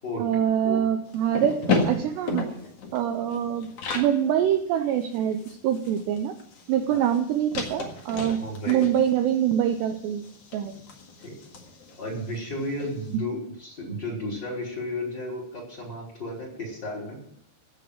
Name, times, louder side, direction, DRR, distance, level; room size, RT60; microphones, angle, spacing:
voice 1, 0.2-2.5 2.9-6.3 6.7-8.4 8.7-10.3 10.5-10.8, right 10 dB, 80° right, 7 dB, 2.6 m, -25 dB
sound 1, 1.1-4.1 4.6-4.7 4.9-12.9, left 3 dB, 55° left, 1.8 m, -33 dB
voice 2, 8.4-8.8 10.7-10.8 11.2-11.3 12.0-17.2, left 1 dB, 20° left, -2 dB, 5.1 m, -33 dB
15.5 x 6.8 x 9.3 m, 0.72 s
omnidirectional pair, 5.6 m